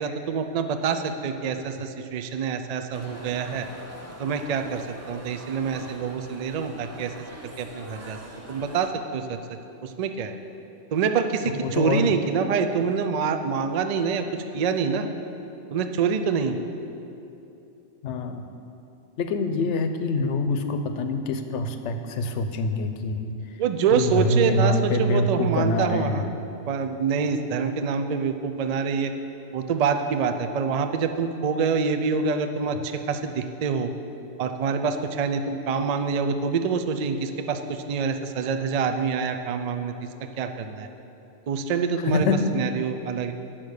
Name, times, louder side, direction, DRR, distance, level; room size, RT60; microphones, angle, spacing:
voice 1, 0.0-3.7 4.2-7.1 7.6-8.2 8.5-9.4 9.8-10.3 10.9-14.3 14.5-15.1 15.7-16.5 23.6-26.2 26.7-29.1 29.5-33.9 34.4-39.9 40.4-40.9 41.5-42.3 42.5-43.3, right 6 dB, 60° right, 7 dB, 0.4 m, -26 dB
sound 1, 2.9-8.9, equal, 15° right, 0.6 m, -43 dB
voice 2, 11.5-12.1 18.0-18.5 19.2-23.6 23.9-26.3 42.0-42.4, left 2 dB, 75° left, 8 dB, 0.9 m, -25 dB
8.8 x 5.9 x 6.4 m, 2.8 s
omnidirectional pair, 1.3 m